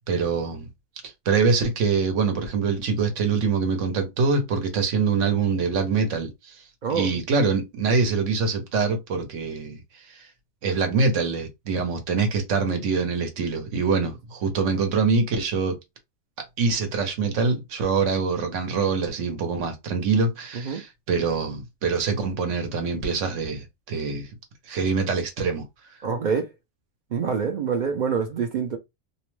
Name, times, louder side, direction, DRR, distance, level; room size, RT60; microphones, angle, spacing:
voice 1, 0.1-0.7 1.0-6.6 6.9-10.3 10.6-15.8 16.6-24.3 24.7-25.7, right 4 dB, 85° right, 1.1 m, -24 dB
voice 2, 26.0-26.5 27.1-28.8, right 6 dB, 60° right, 0.5 m, -26 dB
2.5 x 2.1 x 3.0 m
omnidirectional pair, 1.2 m